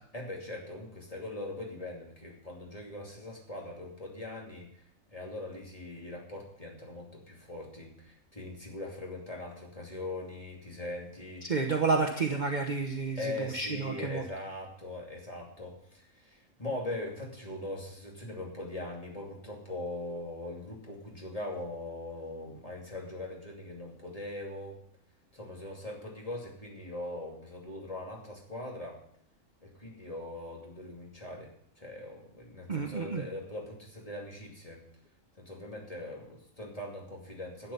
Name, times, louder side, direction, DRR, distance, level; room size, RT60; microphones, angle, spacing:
voice 1, 0.1-4.7 5.1-11.5 13.2-24.8 25.3-29.0 29.6-34.8 35.4-37.7, left 2 dB, 25° left, -2 dB, 2.7 m, -41 dB
voice 2, 11.4-14.2 32.7-33.2, right 4 dB, 40° right, 3 dB, 1.1 m, -30 dB
11.5 x 8.5 x 5.6 m, 0.66 s
omnidirectional pair, 1.4 m